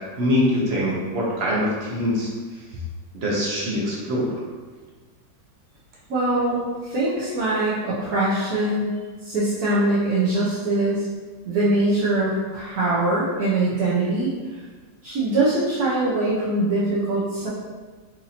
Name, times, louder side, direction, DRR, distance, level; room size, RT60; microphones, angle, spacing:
voice 1, 0.2-2.3 3.1-4.4, left 1 dB, 50° right, -5 dB, 0.9 m, -23 dB
voice 2, 6.1-11.1 11.5-14.3 15.0-17.5, right 2 dB, 65° right, -8 dB, 1.1 m, -22 dB
4.2 x 2.6 x 2.7 m, 1.4 s
omnidirectional pair, 1.8 m